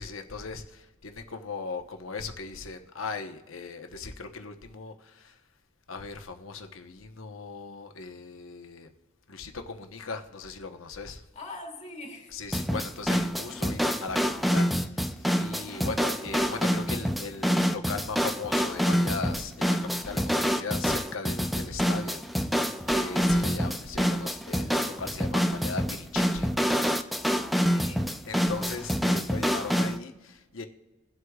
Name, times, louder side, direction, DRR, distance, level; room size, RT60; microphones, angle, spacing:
voice 1, 0.0-5.3 5.9-8.9 9.3-11.2 12.3-22.2 22.9-26.5 28.3-30.7, left 4 dB, 70° left, 5 dB, 1.1 m, -38 dB
voice 2, 11.3-12.4 15.6-15.9 27.5-28.2, left 2 dB, 30° left, 0 dB, 1.9 m, -44 dB
sound 1, 12.5-30.0, equal, ahead, 0.4 m, -27 dB
22.0 x 8.0 x 2.4 m, 1.2 s
head